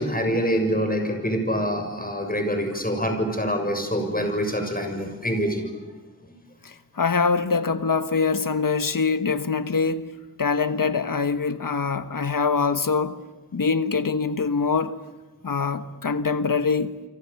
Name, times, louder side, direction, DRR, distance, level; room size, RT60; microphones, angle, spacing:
voice 1, 0.0-5.7, equal, 25° left, 7.0 m, -25 dB
voice 2, 6.6-13.2 13.5-15.0 15.4-16.9, left 5 dB, 90° left, 1.3 m, -24 dB
29.0 x 25.0 x 7.1 m
wide cardioid pair, 50°, 32 cm